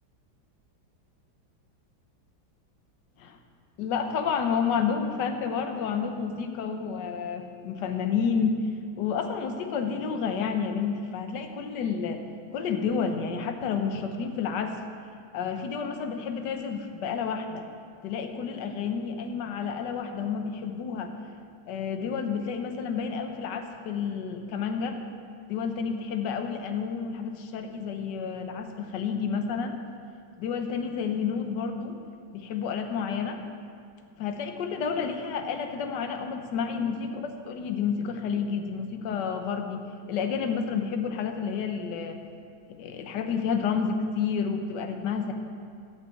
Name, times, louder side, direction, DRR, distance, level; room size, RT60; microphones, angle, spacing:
voice 1, 3.8-8.6 9.0-12.2 12.5-14.8 15.3-17.6 18.0-21.1 21.7-25.0 25.5-29.8 30.4-32.0 32.3-33.4 34.2-39.8 40.1-42.2 42.7-45.3, left 6 dB, 60° left, 6 dB, 1.5 m, -30 dB
13.5 x 6.2 x 7.8 m, 2.3 s
omnidirectional pair, 2.2 m